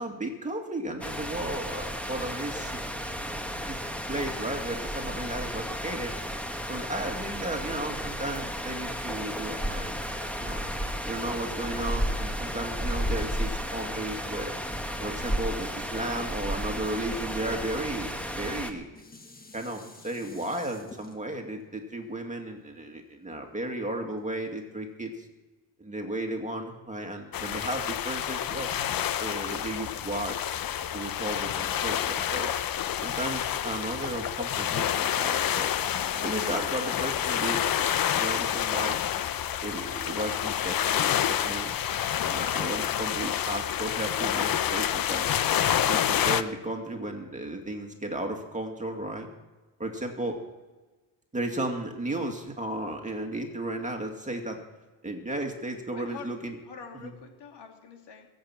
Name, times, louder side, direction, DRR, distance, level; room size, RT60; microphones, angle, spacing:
voice 1, 0.0-3.0 3.7-3.8 4.1-6.1 6.7-10.6 11.1-14.6 15.0-19.0 19.5-25.3 25.8-28.7 29.2-30.4 30.9-32.6 33.0-35.7 36.1-37.7 38.2-39.0 39.6-41.8 42.2-45.3 45.9-49.3 49.8-50.4 51.3-54.6 55.0-56.5 57.0-57.1, right 1 dB, 15° right, 3 dB, 2.3 m, -34 dB
sound 1, 1.0-18.7, equal, 5° left, 1.5 m, -33 dB
Dishes pots and pans, 18.3-23.6 24.2-24.3, left 3 dB, 20° left, 1.6 m, -52 dB
sound 2, 27.3-46.4, left 10 dB, 50° left, 0.8 m, -28 dB
voice 2, 55.9-56.3 56.6-58.3, left 6 dB, 70° left, 3 dB, 2.9 m, -46 dB
22.0 x 8.2 x 6.0 m, 1.2 s
cardioid pair, 105°, 43 cm